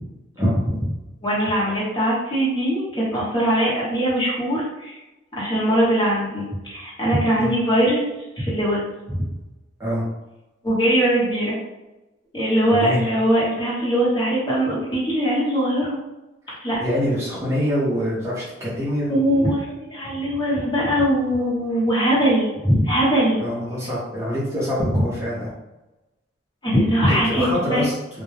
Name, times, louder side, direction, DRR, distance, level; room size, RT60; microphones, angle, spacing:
voice 1, 1.2-5.0 5.3-8.0 8.4-9.2 10.6-11.6 12.3-16.0 16.6-16.8 19.1-23.4 24.9-25.0 26.6-27.8, equal, 25° left, -7 dB, 0.9 m, -21 dB
voice 2, 12.7-13.0 16.5-19.2 23.4-25.5 27.1-28.2, equal, 15° right, -8 dB, 0.6 m, -25 dB
2.2 x 2.2 x 3.1 m, 1.0 s
head